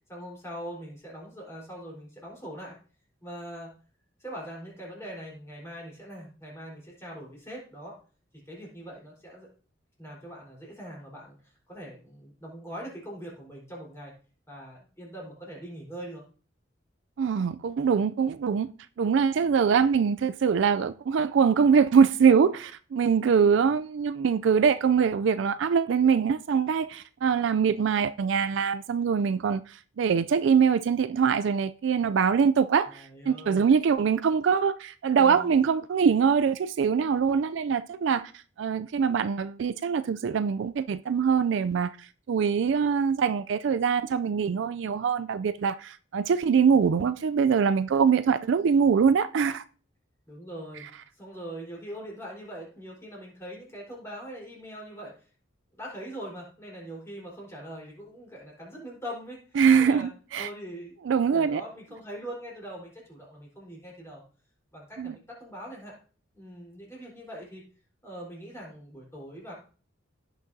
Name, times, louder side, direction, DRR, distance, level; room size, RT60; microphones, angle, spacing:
voice 1, 0.1-2.8 3.2-3.7 4.2-8.0 8.5-9.5 10.0-14.1 14.5-16.2 32.9-33.7 35.2-35.5 50.3-55.1 55.7-60.1 60.4-60.9 61.3-64.2 64.7-66.0 66.3-67.6 68.0-69.5, equal, 15° left, 4.1 m, -42 dB
voice 2, 17.2-18.7 19.0-38.2 38.6-49.6 59.6-60.5 61.1-61.6 65.0-65.1, right 6 dB, 65° right, 0.3 m, -23 dB
16.0 x 6.1 x 2.7 m
head